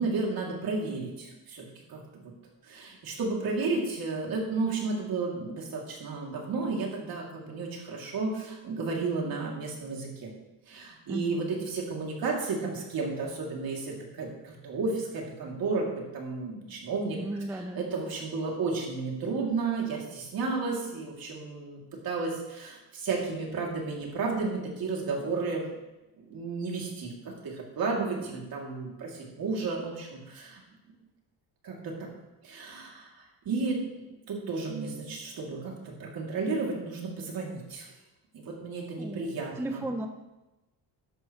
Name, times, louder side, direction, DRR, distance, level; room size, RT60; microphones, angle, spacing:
voice 1, 0.0-2.3 2.7-10.3 10.7-17.2 17.7-25.6 26.2-30.6 31.6-32.1 32.4-33.8 34.3-37.9 38.3-39.8, right 4 dB, 55° right, -1 dB, 2.8 m, -33 dB
voice 2, 11.1-11.7 17.1-17.8 27.9-28.4 39.0-39.3 39.6-40.1, right 1 dB, 5° right, 5 dB, 0.4 m, -36 dB
12.5 x 11.0 x 3.1 m, 1.0 s
cardioid pair, 155°, 41 cm